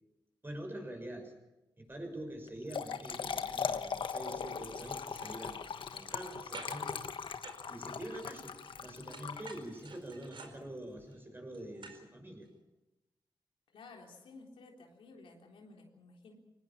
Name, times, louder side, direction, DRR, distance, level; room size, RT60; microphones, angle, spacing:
voice 1, 0.4-1.4 1.8-7.1 7.7-12.5, right 1 dB, 25° right, 4 dB, 6.5 m, -45 dB
Trickle dribble / Fill (with liquid), 2.5-9.9, left 6 dB, 70° left, 1.2 m, -39 dB
sound 1, 4.6-4.8 5.1-6.3 6.5-6.9 7.4-8.8 9.1-12.1 12.5-12.6, right 4 dB, 70° right, 4.6 m, -52 dB
voice 2, 13.7-16.3, left 3 dB, 90° left, 1 dB, 3.8 m, -54 dB
23.0 x 19.0 x 7.3 m, 0.98 s
cardioid pair, 60°, 9 cm